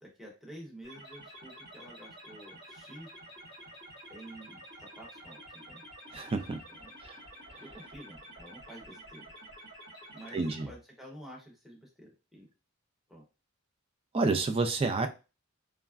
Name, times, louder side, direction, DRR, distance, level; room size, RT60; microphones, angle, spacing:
voice 1, 0.0-3.1 4.1-5.8 6.7-7.0 7.6-9.2 10.1-12.5 13.1-13.2, right 1 dB, ahead, -2 dB, 0.8 m, -50 dB
sound 1, 0.8-10.6, right 1 dB, 55° right, 1.5 m, -50 dB
voice 2, 6.1-6.6 7.0-7.2 10.3-10.7 14.1-15.1, right 3 dB, 25° right, 7 dB, 0.3 m, -29 dB
3.4 x 2.1 x 2.3 m, 0.30 s
head